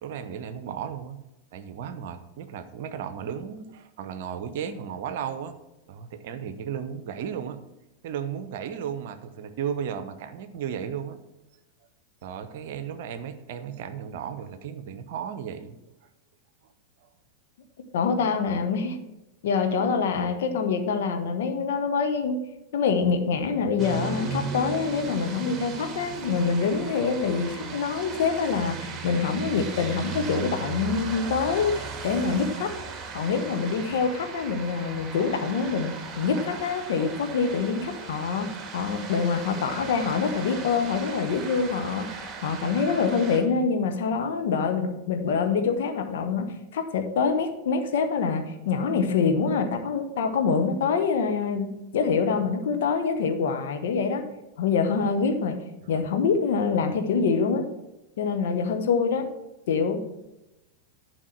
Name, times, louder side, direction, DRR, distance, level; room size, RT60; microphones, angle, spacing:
voice 1, 0.0-1.2 1.5-5.6 5.9-7.6 8.0-11.2 12.2-15.8 17.0-17.1 55.9-56.0, right 8 dB, 50° right, 11 dB, 0.8 m, -35 dB
voice 2, 17.9-19.0 19.4-22.4 22.7-28.8 29.0-32.7 33.1-38.5 38.7-54.2 54.6-55.6 55.9-57.7 58.2-59.3 59.7-60.0, left 5 dB, 55° left, 6 dB, 1.1 m, -25 dB
sound 1, 23.8-43.4, right 4 dB, 20° right, 1.8 m, -37 dB
11.0 x 4.9 x 6.0 m, 0.95 s
figure-of-eight pair, 90°, 0 cm